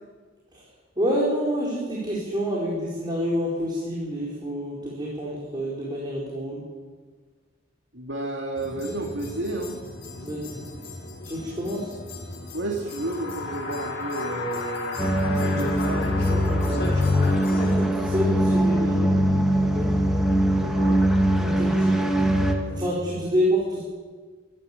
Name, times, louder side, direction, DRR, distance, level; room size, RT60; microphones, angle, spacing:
voice 1, 1.0-6.6 10.2-10.6 11.2-11.9 16.5-16.8 17.1-17.3 17.5-19.0 19.7-19.9 21.4-22.0 22.6-23.8, equal, 25° right, -5 dB, 4.4 m, -28 dB
voice 2, 7.9-9.8 12.5-15.0 15.5-16.1 20.6-21.0, right 2 dB, 70° right, 1 dB, 2.5 m, -31 dB
sound 1, 8.6-17.8, left 3 dB, 60° left, 4.7 m, -35 dB
sound 2, 15.0-22.5, equal, ahead, 2.2 m, -22 dB
25.0 x 12.0 x 9.0 m, 1.5 s
head